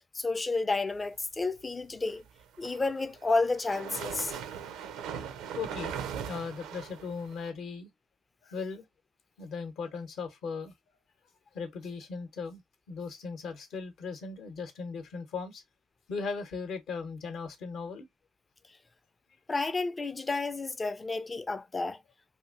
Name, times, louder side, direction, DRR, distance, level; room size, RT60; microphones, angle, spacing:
voice 1, 0.1-2.2 2.6-4.3 19.5-22.0, left 3 dB, 25° left, 0.4 m, -31 dB
sound 1, 2.4-7.5, right 8 dB, 70° right, 0.4 m, -39 dB
voice 2, 5.5-5.9 6.3-7.9 8.4-8.8 9.4-10.7 11.5-12.6 12.9-15.6 16.1-18.1, left 5 dB, 60° left, 0.8 m, -38 dB
2.8 x 2.6 x 2.4 m
hypercardioid pair, 50°, 0 cm